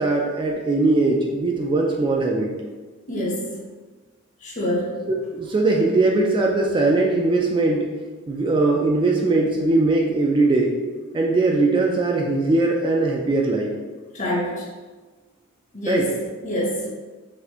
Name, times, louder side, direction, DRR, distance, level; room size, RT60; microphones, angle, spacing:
voice 1, 0.0-2.5 5.1-7.9 8.3-10.8 11.1-13.7 15.9-16.1, right 2 dB, 25° right, 0 dB, 0.3 m, -20 dB
voice 2, 3.1-3.5 4.4-5.0 14.1-14.6 15.7-16.1 16.4-16.9, left 1 dB, 35° left, -3 dB, 0.9 m, -25 dB
4.0 x 2.5 x 2.9 m, 1.3 s
head